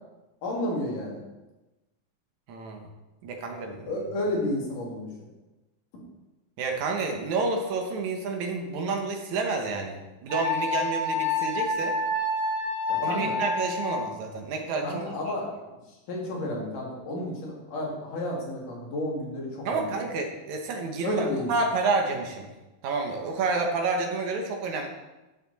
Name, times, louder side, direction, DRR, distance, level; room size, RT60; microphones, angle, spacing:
voice 1, 0.4-1.2 3.9-5.1 12.9-13.4 14.8-20.0 21.0-21.5, left 1 dB, 85° left, -3 dB, 4.0 m, -31 dB
voice 2, 2.5-2.9 3.2-3.9 6.6-12.0 13.0-15.0 19.7-22.5 22.8-24.9, right 3 dB, 70° right, 3 dB, 2.4 m, -29 dB
Wind instrument woodwind instrument, 10.3-14.1, left 2 dB, ahead, 2.7 m, -28 dB
11.5 x 7.4 x 4.2 m, 1.1 s
omnidirectional pair, 3.6 m